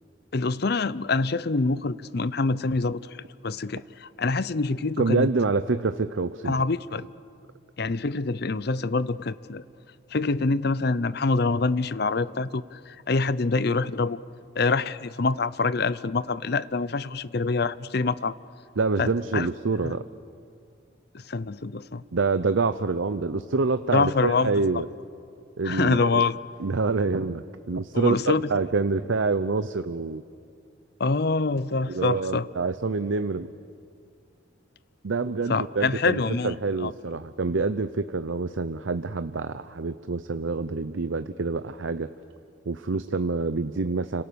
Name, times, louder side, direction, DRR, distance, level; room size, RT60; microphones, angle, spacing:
voice 1, 0.3-3.2 3.4-5.3 6.4-7.1 7.8-9.6 10.1-14.2 14.6-18.4 19.0-19.5 19.8-19.9 21.1-22.0 23.9-24.8 25.6-26.4 27.9-28.5 31.0-32.5 35.5-36.5 36.8-36.9, left 3 dB, 55° left, 17 dB, 0.6 m, -25 dB
voice 2, 5.0-6.6 18.8-20.0 22.1-24.8 25.6-26.2 26.6-30.2 31.9-33.5 35.0-42.1 42.7-44.2, right 4 dB, 75° right, 11 dB, 0.7 m, -26 dB
29.5 x 27.0 x 7.0 m, 2.4 s
head